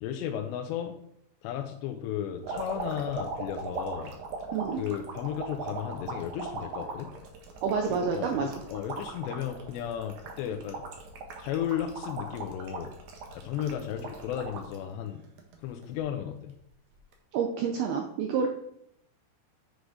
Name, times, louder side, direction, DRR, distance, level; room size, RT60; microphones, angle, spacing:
voice 1, 0.0-1.0 1.4-4.1 4.8-7.1 7.9-10.8 11.4-12.9 13.4-15.2 15.6-16.5, left 10 dB, 80° left, 4 dB, 2.7 m, -34 dB
sound 1, 2.4-14.8 15.2-16.0 17.0-17.1, right 4 dB, 65° right, 1.9 m, -39 dB
voice 2, 7.6-8.6 17.3-18.5, right 6 dB, 80° right, 3 dB, 2.2 m, -28 dB
8.1 x 8.0 x 5.0 m, 0.72 s
omnidirectional pair, 5.6 m